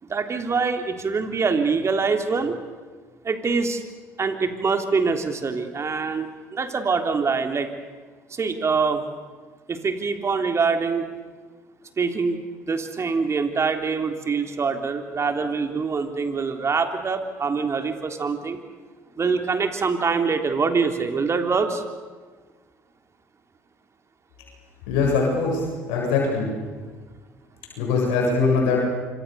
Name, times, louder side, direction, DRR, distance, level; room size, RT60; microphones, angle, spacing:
voice 1, 0.0-2.6 3.2-3.8 4.2-7.7 8.3-9.0 9.7-11.1 12.0-18.6 19.2-21.8, right 4 dB, 35° right, 6 dB, 3.5 m, -24 dB
voice 2, 24.9-26.5 27.8-28.8, left 4 dB, 75° left, -1 dB, 7.9 m, -22 dB
27.5 x 26.0 x 7.0 m, 1.4 s
hypercardioid pair, 60°, 8 cm